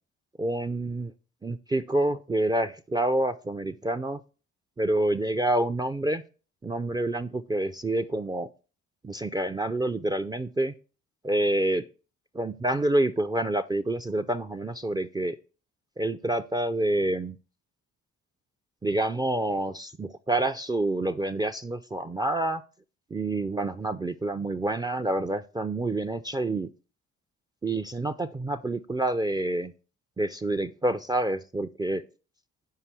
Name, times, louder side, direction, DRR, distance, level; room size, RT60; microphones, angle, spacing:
voice 1, 0.4-1.1 1.4-4.2 4.8-6.2 6.6-8.5 9.0-10.7 11.2-11.8 12.4-15.4 16.0-17.4 18.8-22.6 23.1-26.7 27.6-29.7 30.2-32.0, right 1 dB, 15° right, 12 dB, 0.4 m, -27 dB
5.7 x 4.7 x 5.9 m, 0.35 s
cardioid pair, 90°, 30 cm